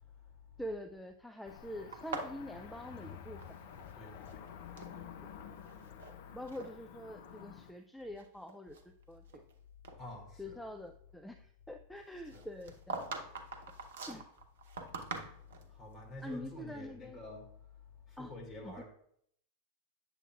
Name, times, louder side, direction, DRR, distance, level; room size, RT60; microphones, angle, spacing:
voice 1, 0.6-3.4 6.3-8.8 9.1-9.2 10.4-13.0 14.1-14.2 16.2-17.2 18.2-18.3 18.6-18.8, left 1 dB, ahead, 0.4 m, -45 dB
Cricket / Motor vehicle (road), 1.4-7.7, left 8 dB, 50° left, 0.6 m, -50 dB
sound 1, 1.9-3.9 4.2-5.0 5.6-6.1 6.5-6.7 7.4-7.5 8.0-9.5 9.8-10.0 12.3-15.7, right 3 dB, 60° right, 0.9 m, -44 dB
voice 2, 4.0-4.4 10.0-10.6 12.3-12.4 15.7-17.5 18.1-18.8, left 1 dB, 25° left, 2.5 m, -48 dB
8.2 x 7.0 x 2.4 m
figure-of-eight pair, 90°, 0 cm